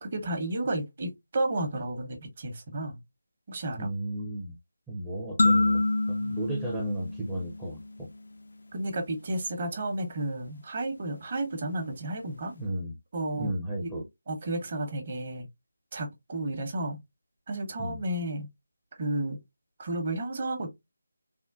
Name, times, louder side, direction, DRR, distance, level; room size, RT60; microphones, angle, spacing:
voice 1, 0.0-3.0 3.5-3.9 8.7-12.5 13.1-13.5 13.8-13.9 14.3-15.5 15.9-17.0 17.5-18.5 19.0-19.4 19.8-20.7, right 1 dB, 40° right, 0.9 m, -32 dB
voice 2, 3.8-4.5 4.9-8.1 12.5-12.9 13.4-14.0 17.8-18.0, right 1 dB, 5° right, 0.6 m, -34 dB
sound 1, 5.4-8.0, left 2 dB, 65° left, 0.4 m, -27 dB
3.6 x 2.1 x 2.4 m
figure-of-eight pair, 160°, 0 cm